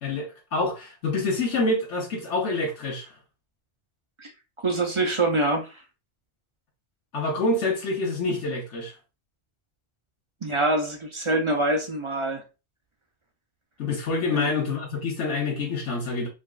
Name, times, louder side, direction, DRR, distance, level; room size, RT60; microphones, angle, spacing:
voice 1, 0.0-3.1 7.1-8.9 13.8-16.3, left 3 dB, 80° left, 1.3 m, -27 dB
voice 2, 4.6-5.8 10.4-12.4 14.3-14.5, right 2 dB, 40° right, 0.5 m, -25 dB
5.0 x 2.4 x 2.4 m
omnidirectional pair, 1.2 m